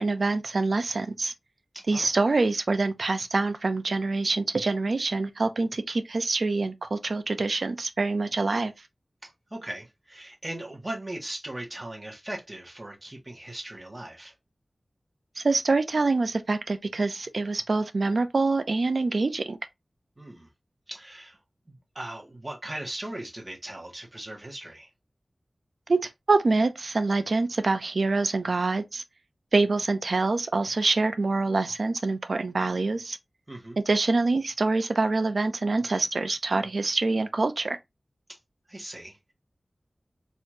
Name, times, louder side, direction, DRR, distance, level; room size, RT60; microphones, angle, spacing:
voice 1, 0.0-1.3 1.9-8.7 15.4-19.6 25.9-26.0 26.3-29.0 29.5-33.2 33.9-37.8, right 3 dB, 75° right, 0.6 m, -25 dB
voice 2, 1.7-2.1 9.2-14.3 20.2-20.5 20.9-21.4 21.7-24.9 33.5-33.8 38.7-39.3, right 1 dB, 30° right, 1.6 m, -39 dB
4.1 x 3.0 x 2.6 m
wide cardioid pair, 80°, 0 cm